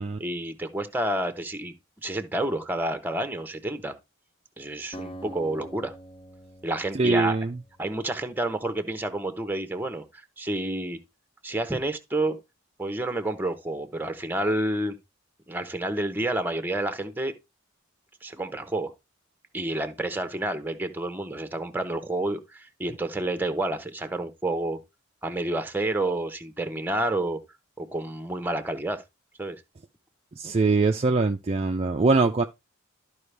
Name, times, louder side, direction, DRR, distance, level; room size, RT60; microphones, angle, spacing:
voice 1, 0.2-1.7 2.0-3.9 4.6-5.9 6.6-7.4 7.8-11.0 11.4-12.4 12.8-15.0 15.5-17.3 18.2-18.9 19.5-24.8 25.2-27.4 27.8-29.0 29.4-29.6, right 1 dB, 10° right, 0.8 m, -29 dB
Acoustic guitar, 4.9-8.5, right 1 dB, 25° left, 0.6 m, -45 dB
voice 2, 6.9-7.6 30.4-32.5, right 3 dB, 30° right, 0.4 m, -23 dB
12.5 x 4.9 x 3.3 m
head